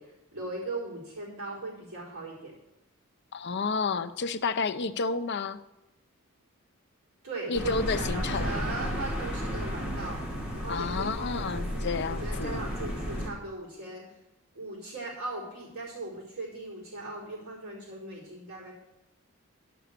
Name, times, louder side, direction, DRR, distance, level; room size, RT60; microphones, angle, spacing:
voice 1, 0.0-2.5 7.2-10.2 10.5-14.0 14.5-18.7, right 2 dB, 75° right, -6 dB, 4.6 m, -38 dB
voice 2, 3.3-5.6 7.5-8.6 10.7-12.6, left 4 dB, 50° left, 10 dB, 0.6 m, -31 dB
sound 1, 7.5-13.3, equal, 5° right, 2.5 m, -33 dB
12.0 x 6.0 x 6.7 m, 0.97 s
head